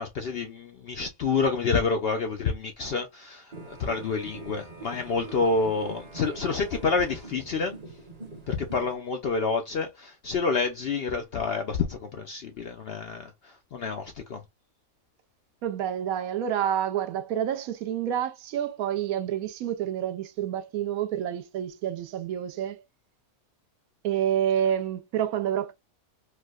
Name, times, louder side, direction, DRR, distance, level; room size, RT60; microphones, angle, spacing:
voice 1, 0.0-7.7 8.5-14.4, left 4 dB, 65° left, 0.6 m, -28 dB
sound 1, 3.5-9.0, right 3 dB, 35° right, 0.8 m, -44 dB
voice 2, 15.6-22.8 24.0-25.7, right 10 dB, 75° right, 1.0 m, -28 dB
4.5 x 2.1 x 2.3 m
omnidirectional pair, 1.5 m